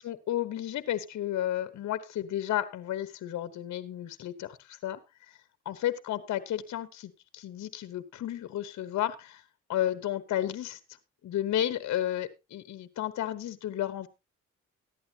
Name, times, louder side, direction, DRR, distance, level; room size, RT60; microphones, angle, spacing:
voice 1, 0.0-5.0 5.7-9.4 9.7-10.8 11.2-14.1, left 12 dB, 65° left, 1.1 m, -32 dB
14.5 x 11.0 x 2.8 m
cardioid pair, 90°, 30 cm